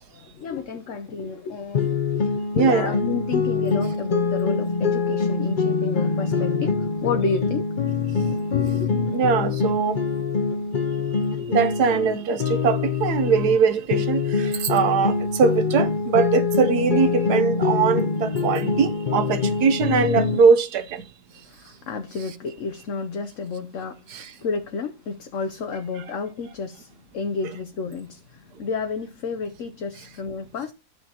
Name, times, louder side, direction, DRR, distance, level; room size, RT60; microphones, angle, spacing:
voice 1, 0.0-7.7 8.5-8.9 16.9-17.3 21.3-30.7, left 4 dB, 55° left, 1.1 m, -31 dB
sound 1, 1.7-13.6 13.9-20.4, left 5 dB, 40° left, 0.8 m, -24 dB
voice 2, 2.5-2.9 9.1-10.0 11.5-21.0 24.1-24.3, right 6 dB, 80° right, 1.4 m, -21 dB
13.0 x 6.3 x 2.8 m
omnidirectional pair, 1.7 m